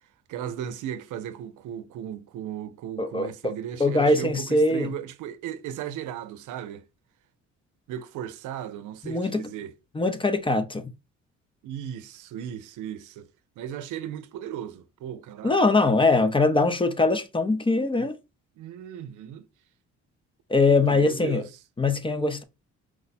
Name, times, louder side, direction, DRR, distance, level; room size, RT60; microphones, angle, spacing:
voice 1, 0.3-6.8 7.9-9.8 11.6-13.3 13.6-15.9 18.0-18.1 18.6-19.5 20.9-21.6, right 10 dB, 85° right, 0.6 m, -36 dB
voice 2, 3.0-3.5 3.8-4.9 9.0-9.4 9.9-10.8 15.4-18.2 20.5-21.4 21.8-22.4, left 3 dB, 15° left, 0.6 m, -22 dB
4.7 x 2.1 x 4.0 m
cardioid pair, 90°, 30 cm